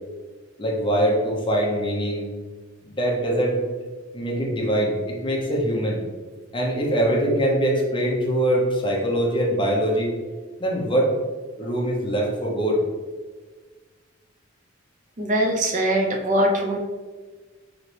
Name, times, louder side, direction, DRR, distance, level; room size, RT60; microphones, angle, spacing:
voice 1, 0.6-2.3 2.8-3.6 4.1-6.0 6.5-10.1 10.6-11.1 11.6-12.8, right 1 dB, 25° left, -2 dB, 0.7 m, -23 dB
voice 2, 15.2-16.8, right 1 dB, 40° right, 1 dB, 0.5 m, -22 dB
3.9 x 3.0 x 3.2 m, 1.4 s
head